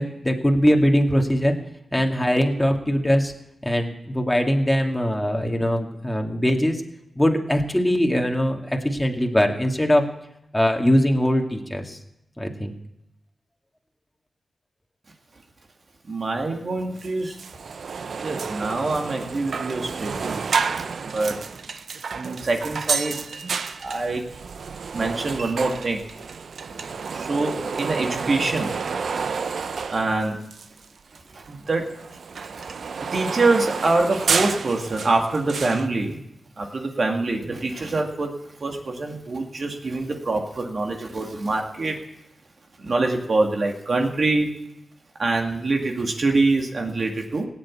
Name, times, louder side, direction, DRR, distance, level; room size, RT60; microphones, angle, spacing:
voice 1, 0.0-1.5 1.9-3.3 3.6-6.8 7.2-10.0 10.5-12.0 12.4-12.7, equal, 10° left, 2 dB, 2.1 m, -21 dB
voice 2, 16.1-17.4 18.2-20.4 21.0-21.4 22.1-23.3 23.8-24.2 24.9-26.0 26.7-26.9 27.1-28.7 29.1-29.2 29.9-30.4 31.3-31.9 32.6-32.7 33.1-36.2 36.6-42.0 42.8-44.5 45.2-47.4, right 3 dB, 55° right, 2 dB, 2.3 m, -25 dB
sound 1, 17.0-17.1 17.4-30.9 31.2-35.9, right 5 dB, 75° right, 0.7 m, -30 dB
17.5 x 8.0 x 8.5 m, 0.83 s
cardioid pair, 55°, 0 cm